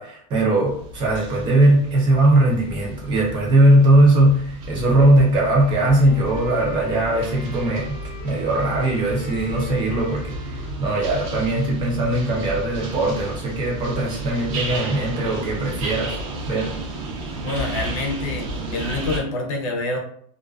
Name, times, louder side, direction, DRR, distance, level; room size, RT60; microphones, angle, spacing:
voice 1, 0.0-8.0 8.2-16.2 16.5-16.7, right 1 dB, 20° right, -2 dB, 0.5 m, -19 dB
sound 1, 0.6-19.2, right 1 dB, 55° right, 0.7 m, -33 dB
Wind instrument woodwind instrument, 5.3-13.1, left 2 dB, 5° left, 0.9 m, -43 dB
voice 2, 17.4-18.5 18.7-20.0, left 2 dB, 55° left, 2 dB, 0.6 m, -26 dB
2.4 x 2.3 x 2.2 m, 0.63 s
supercardioid pair, 165°, 21 cm